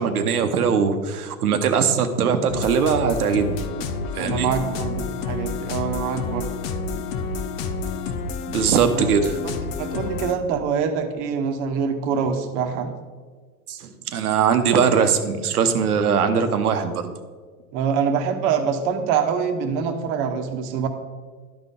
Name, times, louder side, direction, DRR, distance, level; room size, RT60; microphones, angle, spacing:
voice 1, 0.0-3.6 4.1-4.5 8.5-9.4 13.7-17.1, right 6 dB, 90° right, 8 dB, 0.9 m, -21 dB
sound 1, 2.5-10.3, left 4 dB, 65° left, 0.8 m, -29 dB
voice 2, 4.2-6.5 8.7-9.1 9.8-12.9 17.7-20.9, right 6 dB, 50° right, 6 dB, 1.1 m, -25 dB
12.0 x 4.0 x 3.7 m, 1.5 s
hypercardioid pair, 105°, 43 cm